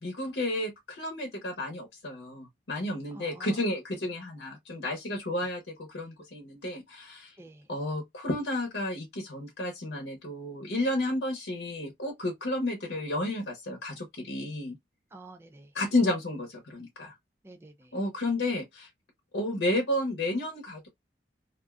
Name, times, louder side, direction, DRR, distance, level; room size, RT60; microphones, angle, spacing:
voice 1, 0.0-7.4 7.7-14.8 15.7-17.1 17.9-18.9 19.3-20.9, left 1 dB, 80° left, 0.8 m, -32 dB
voice 2, 3.1-3.6 3.9-4.1 7.4-7.7 15.1-15.7 17.4-18.0, right 2 dB, 15° right, 0.3 m, -49 dB
2.5 x 2.2 x 2.3 m
head